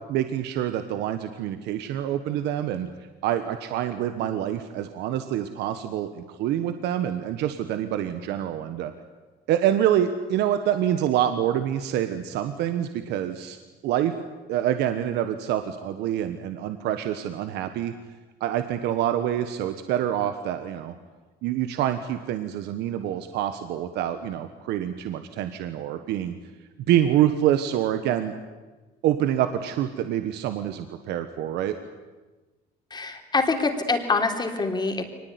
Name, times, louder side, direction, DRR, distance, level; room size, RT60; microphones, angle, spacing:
voice 1, 0.1-2.9 3.2-8.9 9.5-13.6 13.8-14.1 14.5-17.9 18.4-20.9 21.4-26.4 26.9-28.3 29.0-31.7, right 11 dB, 85° right, 9 dB, 1.4 m, -26 dB
voice 2, 32.9-35.1, left 3 dB, 25° left, 5 dB, 3.4 m, -25 dB
23.5 x 19.5 x 9.7 m, 1.2 s
cardioid pair, 110°, 17 cm